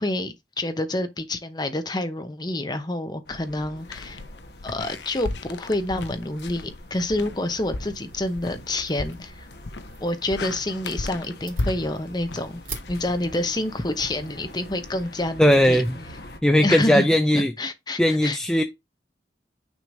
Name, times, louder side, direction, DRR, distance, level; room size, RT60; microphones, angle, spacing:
voice 1, 0.0-4.2 4.6-9.5 10.0-12.6 12.9-15.8 16.6-17.1 17.3-18.4, left 1 dB, 25° left, 0.9 m, -28 dB
sound 1, 3.2-16.4, left 1 dB, 60° left, 1.4 m, -45 dB
sound 2, 3.8-13.7, left 2 dB, 75° left, 0.7 m, -35 dB
sound 3, 8.1-15.3, right 5 dB, 50° right, 2.0 m, -46 dB
voice 2, 15.4-16.0 16.4-17.5 18.0-18.6, equal, 5° left, 0.5 m, -18 dB
6.3 x 3.2 x 5.3 m
head